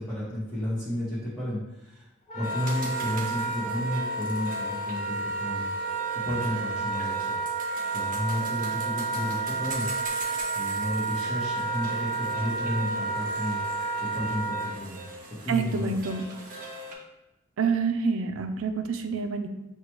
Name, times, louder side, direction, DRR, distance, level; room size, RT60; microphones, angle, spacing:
voice 1, 0.0-2.1 2.3-5.7 6.2-7.3 7.9-9.9 10.5-13.6 14.1-15.0 15.4-15.9, left 1 dB, ahead, -12 dB, 0.9 m, -32 dB
Wind instrument woodwind instrument, 2.3-14.7, right 3 dB, 35° left, 0.7 m, -31 dB
sound 1, 2.4-16.9, right 2 dB, 40° right, 0.7 m, -42 dB
voice 2, 15.5-16.2 17.6-19.5, right 5 dB, 70° right, 7 dB, 0.4 m, -27 dB
6.5 x 2.2 x 3.0 m, 1.0 s
head